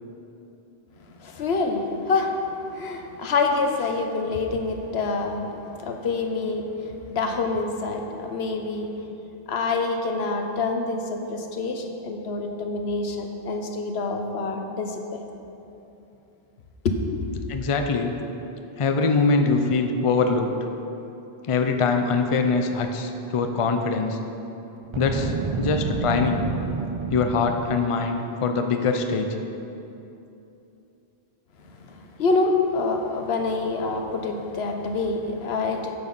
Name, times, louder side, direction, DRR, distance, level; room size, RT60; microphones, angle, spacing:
voice 1, 1.1-5.4 5.8-9.1 9.5-15.2 16.8-17.3 31.6-36.0, left 3 dB, 85° left, 4 dB, 1.1 m, -26 dB
voice 2, 17.5-18.2 18.8-20.5 21.5-24.2 24.9-26.5 27.1-29.4, left 4 dB, 40° left, 5 dB, 0.6 m, -23 dB
Boom, 24.9-28.0, right 4 dB, 40° right, 0.4 m, -29 dB
9.8 x 7.0 x 5.4 m, 2.9 s
omnidirectional pair, 1.0 m